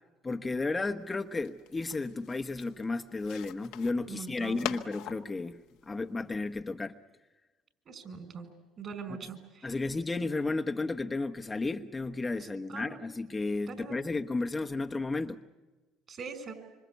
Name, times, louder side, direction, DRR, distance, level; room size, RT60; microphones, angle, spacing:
voice 1, 0.2-7.0 9.6-15.4, left 3 dB, 20° left, 1.1 m, -33 dB
sound 1, 1.0-6.5, left 13 dB, 75° left, 1.3 m, -44 dB
voice 2, 4.1-4.7 7.9-8.5 8.8-9.8 12.4-13.0 13.7-14.0 16.1-16.5, right 5 dB, 45° right, 5.9 m, -42 dB
26.5 x 26.0 x 8.3 m
supercardioid pair, 75°, 0 cm